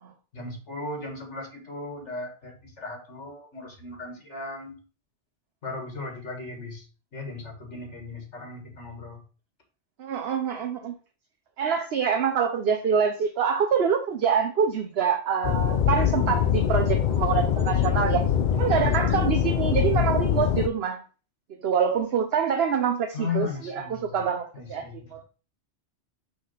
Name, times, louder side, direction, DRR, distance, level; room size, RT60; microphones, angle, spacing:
voice 1, 0.3-4.8 5.6-6.8 7.1-9.2 23.1-24.2 24.5-25.1, left 4 dB, 90° left, 2.2 m, -36 dB
voice 2, 10.0-10.9 11.6-18.2 18.5-21.0 21.6-25.2, right 7 dB, 65° right, 1.0 m, -25 dB
sound 1, 15.4-20.7, left 9 dB, 55° left, 0.6 m, -23 dB
6.1 x 3.4 x 5.6 m
omnidirectional pair, 1.2 m